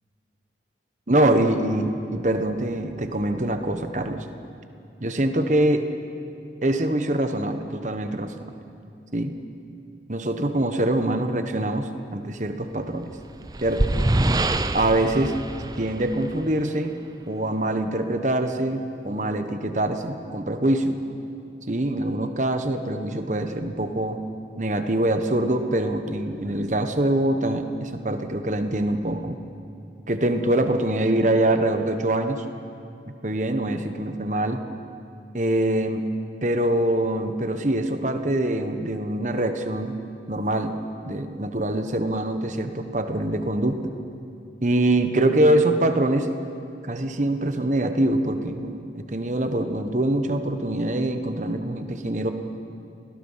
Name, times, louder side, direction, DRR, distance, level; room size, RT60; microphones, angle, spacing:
voice 1, 1.1-4.2 5.0-5.9 6.6-8.3 9.1-9.3 10.1-13.1 13.6-13.8 14.7-15.3 15.8-16.9 17.3-21.0 21.7-24.2 24.6-29.4 30.1-32.4 33.2-34.6 35.3-36.0 36.4-40.0 40.3-40.8 41.1-43.9 44.6-46.3 46.8-52.3, right 1 dB, 40° right, 7 dB, 1.3 m, -24 dB
sound 1, 13.0-16.6, right 2 dB, 20° right, 0.6 m, -25 dB
29.0 x 19.5 x 5.7 m, 2.6 s
head